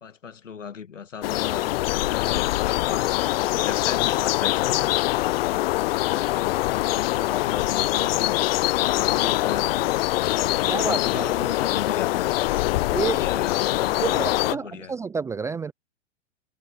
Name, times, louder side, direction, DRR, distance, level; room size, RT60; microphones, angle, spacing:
voice 1, 0.0-4.9 5.8-8.4 8.9-9.8 10.6-12.3 12.6-14.9, left 7 dB, 90° left, 2.2 m, -36 dB
sound 1, 1.2-14.5, left 17 dB, 50° left, 0.6 m, -23 dB
voice 2, 10.7-11.3 12.9-13.4 14.0-15.7, right 5 dB, 10° right, 0.4 m, -29 dB
hypercardioid pair, 115°, 36 cm